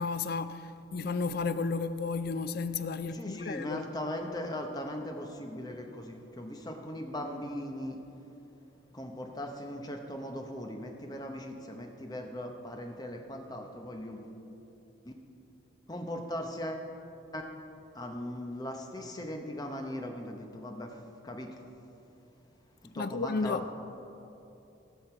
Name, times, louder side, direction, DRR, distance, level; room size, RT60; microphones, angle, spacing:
voice 1, 0.0-3.8 23.0-23.6, left 4 dB, 50° left, 0.4 m, -33 dB
voice 2, 3.1-8.0 8.9-14.4 15.0-15.1 15.9-16.9 17.3-17.4 17.9-20.9 21.2-21.5 22.9-23.7, left 1 dB, 20° left, 0.8 m, -39 dB
17.0 x 6.5 x 4.4 m
head